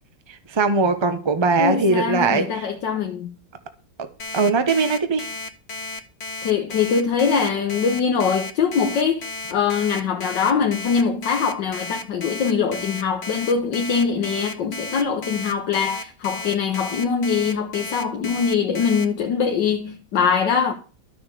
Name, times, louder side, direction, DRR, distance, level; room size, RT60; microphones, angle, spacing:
voice 1, 0.5-2.7 4.3-5.3, right 4 dB, 20° right, 0.8 m, -20 dB
voice 2, 1.6-3.3 6.4-20.7, left 6 dB, 85° left, 1.8 m, -22 dB
Alarm, 4.2-19.0, left 3 dB, 45° left, 1.1 m, -33 dB
12.0 x 6.7 x 6.7 m
omnidirectional pair, 1.9 m